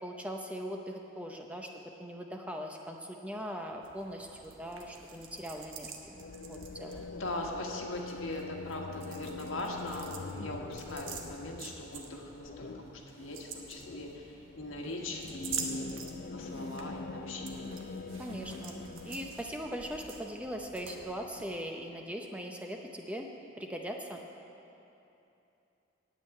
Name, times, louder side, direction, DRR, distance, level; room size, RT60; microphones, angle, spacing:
voice 1, 0.0-7.1 18.2-23.3 23.6-24.2, equal, 5° right, 2 dB, 0.6 m, -40 dB
sound 1, 3.8-21.5, right 5 dB, 70° right, 1.1 m, -47 dB
sound 2, 6.2-20.1 20.4-21.1, left 3 dB, 45° left, 0.4 m, -44 dB
voice 2, 6.9-17.7, left 1 dB, 75° left, 0 dB, 1.6 m, -40 dB
9.7 x 8.1 x 9.0 m, 2.9 s
head